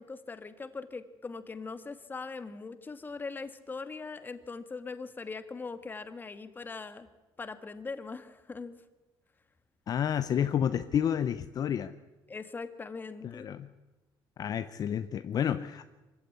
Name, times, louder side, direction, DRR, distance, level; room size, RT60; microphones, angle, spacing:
voice 1, 0.0-7.1 7.4-8.7 12.3-13.5, left 4 dB, 20° left, 11 dB, 1.6 m, -41 dB
voice 2, 9.9-11.9 13.2-13.7 14.4-15.8, left 9 dB, 45° left, 12 dB, 0.7 m, -30 dB
24.5 x 15.5 x 9.7 m, 1.1 s
cardioid pair, 135°, 9 cm